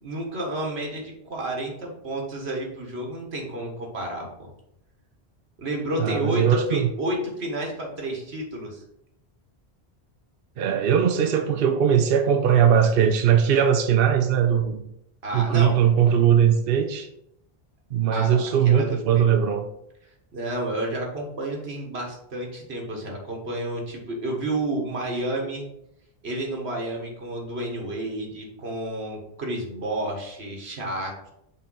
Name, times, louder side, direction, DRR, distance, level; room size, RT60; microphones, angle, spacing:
voice 1, 0.0-4.5 5.6-8.8 15.2-15.7 18.1-19.3 20.3-25.7 26.2-31.3, right 1 dB, 85° right, 0 dB, 1.7 m, -31 dB
voice 2, 6.0-6.9 10.6-14.8 15.3-17.1 17.9-19.6, right 8 dB, 65° right, 5 dB, 0.8 m, -20 dB
5.5 x 3.5 x 5.4 m, 0.78 s
omnidirectional pair, 1.1 m